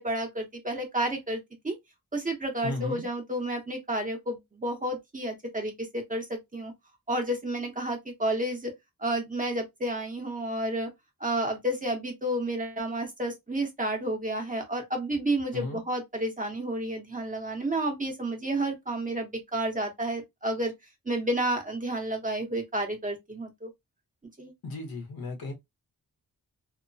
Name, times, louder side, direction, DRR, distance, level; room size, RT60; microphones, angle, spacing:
voice 1, 0.0-1.8 2.1-6.7 7.1-8.7 9.0-10.9 11.2-20.7 21.1-23.7 24.4-24.5, right 1 dB, 25° right, 0.9 m, -31 dB
voice 2, 2.6-3.1 15.5-15.8 24.6-25.5, left 3 dB, 90° left, 1.1 m, -35 dB
2.9 x 2.1 x 2.6 m
wide cardioid pair, 115°, 35 cm